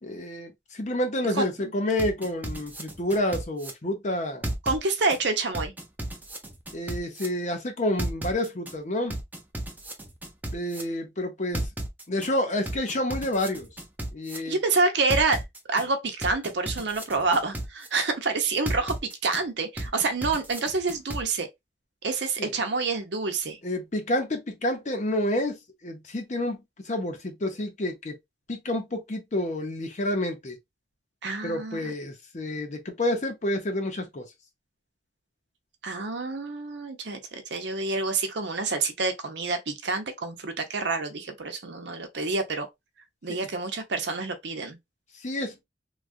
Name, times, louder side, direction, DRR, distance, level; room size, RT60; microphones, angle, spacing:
voice 1, 0.0-4.4 6.7-9.2 10.5-11.6 12.1-13.7 14.1-14.6 22.4-22.5 23.6-28.1 28.5-30.6 31.4-34.2 43.3-43.4 45.2-45.6, left 1 dB, 40° left, 0.7 m, -29 dB
sound 1, 2.0-3.7 4.4-5.2 5.5-7.3 8.0-8.7 9.1-10.8 11.5-12.3 12.7-14.4 15.1-15.8 16.2-17.9 18.7-19.4 19.8-21.2, right 1 dB, 10° right, 0.6 m, -33 dB
voice 2, 4.6-5.7 14.3-15.4 15.7-21.5 22.0-23.6 31.2-31.9 35.8-42.7 43.2-44.8, right 3 dB, 75° right, 0.7 m, -28 dB
3.2 x 2.3 x 2.4 m
head